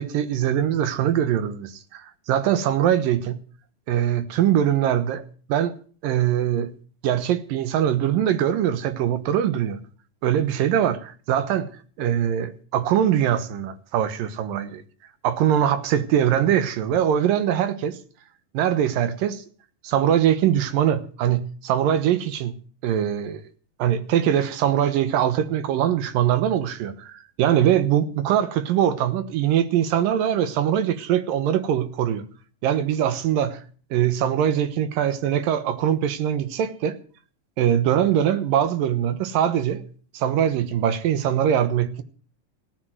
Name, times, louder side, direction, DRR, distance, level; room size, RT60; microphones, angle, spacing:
voice 1, 0.0-3.4 3.9-5.2 5.5-5.7 6.0-6.7 7.0-9.8 10.2-11.7 12.0-14.8 15.2-18.0 18.5-19.4 19.8-22.6 22.8-23.4 23.8-32.2 32.6-33.6 33.9-37.0 37.6-39.8 40.1-42.0, right 10 dB, 80° right, 2.9 m, -22 dB
17.0 x 9.6 x 7.8 m
omnidirectional pair, 4.0 m